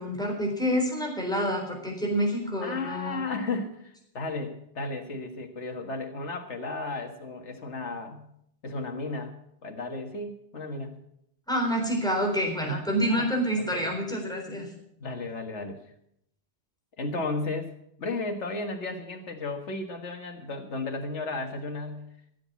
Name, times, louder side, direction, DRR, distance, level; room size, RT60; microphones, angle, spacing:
voice 1, 0.0-3.2 11.5-14.7, equal, 5° left, 0 dB, 3.9 m, -27 dB
voice 2, 2.6-8.3 8.6-9.4 9.6-11.0 12.6-12.8 13.1-13.3 13.6-13.9 15.0-15.8 17.0-17.7 18.0-22.1, left 3 dB, 80° left, 5 dB, 2.0 m, -34 dB
15.0 x 8.1 x 8.3 m, 0.74 s
omnidirectional pair, 1.2 m